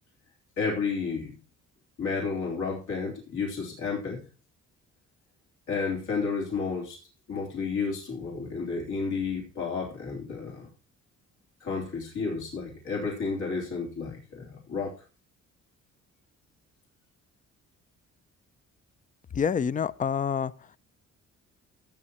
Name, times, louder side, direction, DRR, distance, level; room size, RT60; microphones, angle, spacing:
voice 1, 0.6-1.4 2.0-4.2 5.7-7.0 7.3-10.7 11.6-14.9, left 4 dB, 80° left, 3.3 m, -31 dB
voice 2, 19.4-20.5, left 7 dB, 25° left, 0.4 m, -27 dB
16.0 x 7.9 x 3.0 m
cardioid pair, 90°, 30 cm